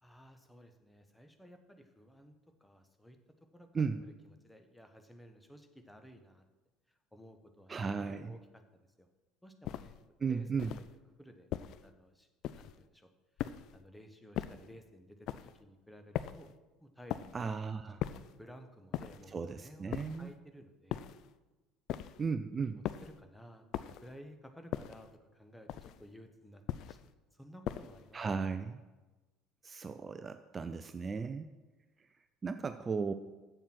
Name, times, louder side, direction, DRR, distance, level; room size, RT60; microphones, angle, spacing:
voice 1, 0.0-3.2 3.5-6.4 6.9-8.6 9.0-9.1 9.4-10.9 11.2-11.5 11.8-12.3 12.6-13.1 13.7-16.5 16.8-17.5 18.4-21.0 22.6-26.6 26.9-27.0 27.3-28.2 28.5-28.6, equal, 5° left, 7 dB, 1.1 m, -55 dB
voice 2, 7.7-8.3 10.2-10.7 17.3-18.0 19.3-20.3 22.2-22.8 28.1-28.8 29.6-31.5 32.4-33.1, right 5 dB, 30° right, 10 dB, 0.5 m, -35 dB
sound 1, 9.6-10.0 10.6-11.0 11.5-11.9 12.4-12.8 13.4-13.8 14.3-14.7 15.3-15.6 16.1-16.5 17.1-17.5 18.0-18.4 18.9-19.3 19.9-20.3 20.9-21.3 21.9-22.3 22.8-23.2 23.7-24.1 24.7-25.1 25.7-26.1 26.7-27.1 27.7-28.1, left 12 dB, 55° left, 0.4 m, -40 dB
7.9 x 7.2 x 5.9 m, 1.2 s
hypercardioid pair, 65°, 0 cm